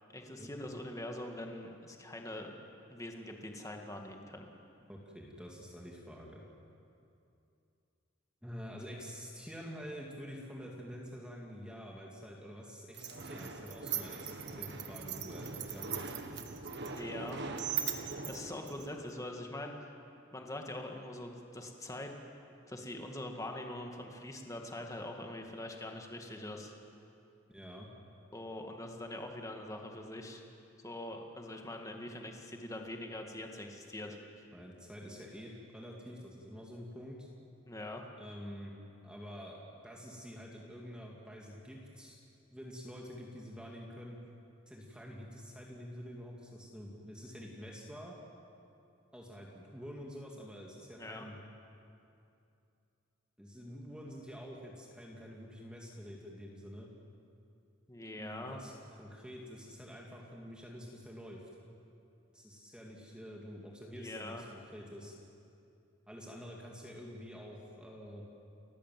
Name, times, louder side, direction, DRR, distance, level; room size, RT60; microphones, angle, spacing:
voice 1, 0.1-2.5 2.9-4.5 16.9-17.4 17.8-19.9 20.3-22.1 22.7-26.7 28.3-30.4 30.8-34.2 37.7-38.0 50.9-51.3 57.9-58.6 63.9-64.4, left 1 dB, 15° left, 2 dB, 2.0 m, -43 dB
voice 2, 4.9-6.4 8.4-16.2 27.5-27.9 34.5-37.3 38.2-38.8 39.0-39.6 39.8-42.2 42.5-44.2 44.7-48.2 49.1-51.4 53.4-56.9 58.2-61.5 62.3-65.1 66.1-68.2, equal, 5° right, -2 dB, 2.2 m, -47 dB
sound 1, 12.9-19.2, right 7 dB, 60° right, 1.6 m, -40 dB
30.0 x 15.0 x 7.7 m, 2.6 s
head